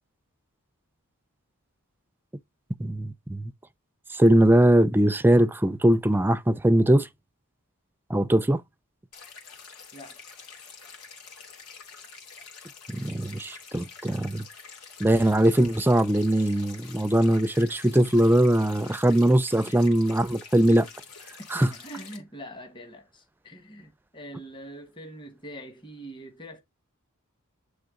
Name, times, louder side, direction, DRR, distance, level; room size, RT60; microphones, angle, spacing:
voice 1, 2.8-3.5 4.1-7.1 8.1-8.6 12.9-14.4 15.0-20.9 21.5-21.7, right 1 dB, 10° right, 0.4 m, -21 dB
sound 1, 9.1-22.2, left 5 dB, 85° left, 2.4 m, -47 dB
voice 2, 9.9-10.2 19.7-19.8 21.5-26.6, right 1 dB, 20° left, 1.3 m, -43 dB
9.0 x 3.4 x 3.7 m
head